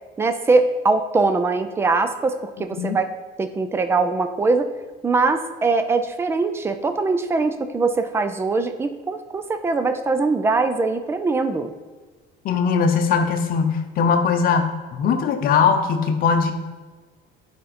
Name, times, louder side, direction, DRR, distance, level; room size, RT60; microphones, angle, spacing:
voice 1, 0.2-3.1 3.4-4.7 5.0-11.7, right 3 dB, 10° right, 9 dB, 0.4 m, -22 dB
voice 2, 12.4-16.5, left 5 dB, 45° left, 6 dB, 0.8 m, -20 dB
9.3 x 5.1 x 4.2 m, 1.3 s
cardioid pair, 165°, 21 cm